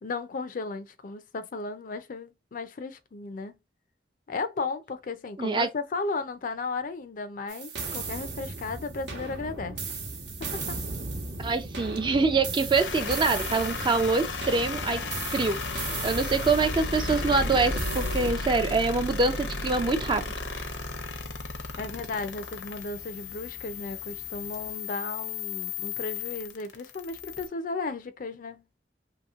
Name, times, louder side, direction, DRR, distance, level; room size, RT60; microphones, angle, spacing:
voice 1, 0.0-3.6 4.3-10.0 10.4-10.6 21.8-28.6, left 3 dB, 50° left, 0.4 m, -35 dB
voice 2, 5.4-5.7 11.4-15.0 15.3-15.6 16.0-20.2, right 3 dB, 25° right, 0.4 m, -25 dB
sound 1, 7.5-18.3, right 3 dB, 75° right, 1.0 m, -36 dB
sound 2, 10.4-24.7, right 1 dB, 45° right, 0.8 m, -46 dB
sound 3, 12.7-27.5, left 4 dB, 80° left, 0.7 m, -35 dB
3.0 x 2.9 x 2.4 m
head